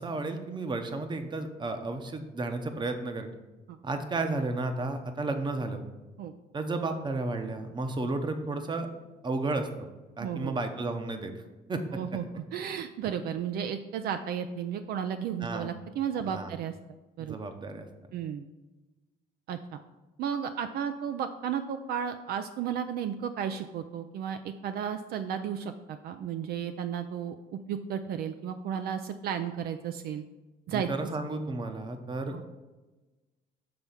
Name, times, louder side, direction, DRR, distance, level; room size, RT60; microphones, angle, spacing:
voice 1, 0.0-3.3 3.8-5.8 6.5-8.9 9.2-9.9 10.2-11.3 11.7-11.8 15.4-15.7 16.3-16.5 17.2-17.9 30.7-32.4, right 2 dB, 25° right, 7 dB, 0.8 m, -32 dB
voice 2, 10.2-10.5 11.9-16.7 17.2-17.4 18.1-18.5 19.5-19.8 20.2-27.3 27.7-30.2 30.7-30.9 32.3-32.4, right 8 dB, 65° right, 9 dB, 0.4 m, -33 dB
6.8 x 3.5 x 5.7 m, 1.1 s
cardioid pair, 110°, 17 cm